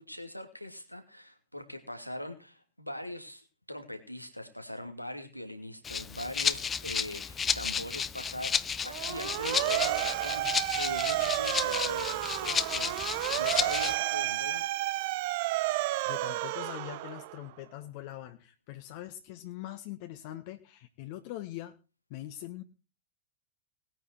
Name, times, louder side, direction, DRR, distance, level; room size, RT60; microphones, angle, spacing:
voice 1, 0.0-14.7, left 1 dB, 90° left, 6 dB, 2.5 m, -42 dB
Rattle (instrument), 5.8-14.0, left 6 dB, 20° left, 0.8 m, -32 dB
Motor vehicle (road) / Siren, 8.9-17.5, right 17 dB, 50° right, 0.8 m, -31 dB
voice 2, 16.1-21.7 22.1-22.6, left 14 dB, 45° left, 7 dB, 1.5 m, -42 dB
20.0 x 9.2 x 4.5 m, 0.34 s
figure-of-eight pair, 90°, 0 cm